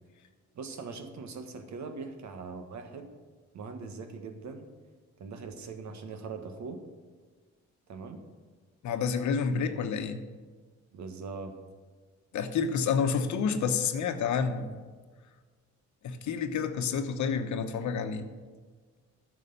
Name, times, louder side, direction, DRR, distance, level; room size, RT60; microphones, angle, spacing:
voice 1, 0.5-3.1 3.5-4.7 5.2-6.8 7.9-8.2 10.9-11.5, right 4 dB, 65° right, 6 dB, 1.5 m, -41 dB
voice 2, 8.8-10.2 12.3-14.8 16.0-18.3, left 6 dB, 70° left, 8 dB, 1.1 m, -29 dB
11.0 x 6.6 x 6.7 m, 1.4 s
cardioid pair, 90°, 30 cm